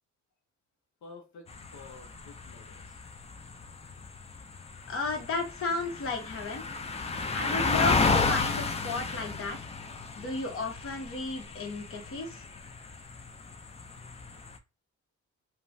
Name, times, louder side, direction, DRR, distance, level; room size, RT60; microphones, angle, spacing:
voice 1, 1.0-3.0, left 4 dB, 70° left, 0.9 m, -51 dB
sound 1, 1.5-14.6, left 4 dB, 20° left, 0.4 m, -33 dB
voice 2, 4.9-6.6 7.3-9.6 10.1-12.4, left 3 dB, 45° left, 1.0 m, -33 dB
3.0 x 2.2 x 2.6 m
cardioid pair, 90°, 30 cm